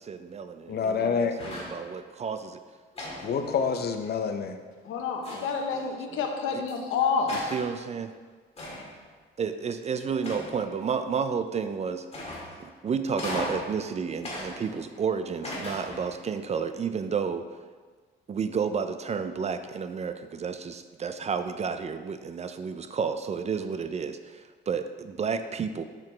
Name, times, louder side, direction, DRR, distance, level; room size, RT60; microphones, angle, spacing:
voice 1, 0.0-2.6 5.3-5.5 5.7-6.6 7.3-8.1 9.4-12.0 12.6-17.5 18.3-25.8, right 6 dB, 35° right, 10 dB, 0.4 m, -31 dB
voice 2, 0.7-1.4 3.2-4.6, left 6 dB, 55° left, 7 dB, 0.6 m, -27 dB
sound 1, 1.4-1.8 2.9-4.1 5.2-5.7 6.7-6.8 7.3-7.7 8.6-9.0 10.2-10.8 12.1-12.7 13.2-13.7 14.2-15.0 15.4-16.2, left 1 dB, 30° left, 2.0 m, -37 dB
voice 3, 4.8-7.3, left 5 dB, 85° left, 3 dB, 0.9 m, -28 dB
6.3 x 6.0 x 3.2 m, 1.5 s
cardioid pair, 90°, 20 cm